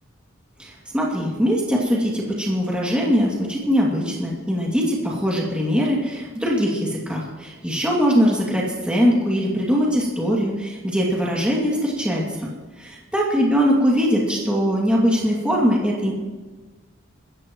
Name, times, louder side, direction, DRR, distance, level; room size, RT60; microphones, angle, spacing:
voice 1, 0.6-12.5 12.8-16.1, equal, 5° right, -4 dB, 2.4 m, -21 dB
26.5 x 14.5 x 3.1 m, 1.3 s
head